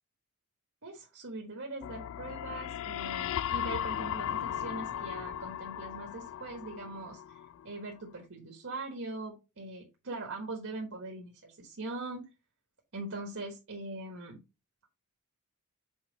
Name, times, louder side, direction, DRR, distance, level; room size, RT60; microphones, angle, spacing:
voice 1, 0.8-12.3 12.9-14.4, right 2 dB, 65° right, 2 dB, 1.3 m, -41 dB
sound 1, 1.8-7.7, left 10 dB, 60° left, 0.3 m, -37 dB
5.6 x 4.3 x 3.9 m, 0.27 s
head